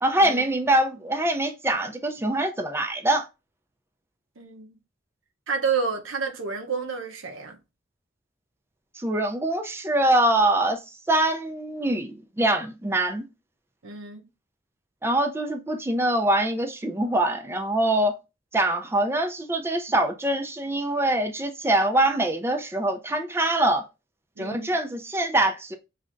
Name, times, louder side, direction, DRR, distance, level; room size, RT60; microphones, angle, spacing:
voice 1, 0.0-3.3 9.0-10.8 11.1-13.3 15.0-18.2 18.5-23.9 24.4-25.8, right 1 dB, 10° right, 0.4 m, -24 dB
voice 2, 4.4-4.7 5.5-7.6 13.8-14.2 24.4-24.8, right 5 dB, 85° right, 0.8 m, -30 dB
5.0 x 3.3 x 2.5 m
head